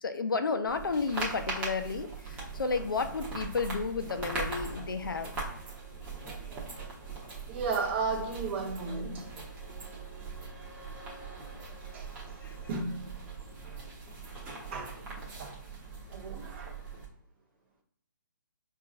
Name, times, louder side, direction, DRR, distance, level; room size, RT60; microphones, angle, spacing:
voice 1, 0.0-5.3 12.4-12.5, left 4 dB, 85° left, 0.6 m, -32 dB
sound 1, 0.7-17.1, right 3 dB, 15° right, 1.0 m, -41 dB
voice 2, 7.5-9.3 11.9-12.1 12.7-13.1 14.7-15.0 15.4-15.6 16.1-16.7, right 4 dB, 35° right, 0.9 m, -34 dB
4.7 x 2.5 x 2.5 m
hypercardioid pair, 150°, 11 cm